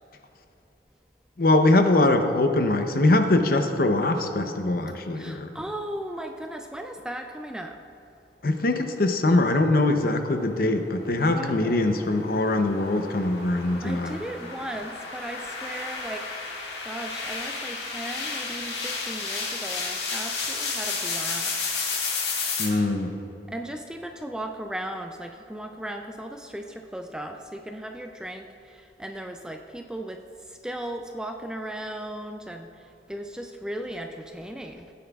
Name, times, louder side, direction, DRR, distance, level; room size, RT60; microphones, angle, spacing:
voice 1, 1.4-5.5 8.4-14.2 22.6-23.1, left 2 dB, 55° left, 6 dB, 0.7 m, -22 dB
voice 2, 5.1-7.8 11.2-11.9 13.7-16.5 16.8-21.8 23.5-34.9, right 1 dB, 5° right, 4 dB, 0.3 m, -37 dB
sound 1, 10.6-22.7, left 4 dB, 75° left, 1.8 m, -32 dB
16.5 x 9.3 x 2.3 m, 2.8 s
head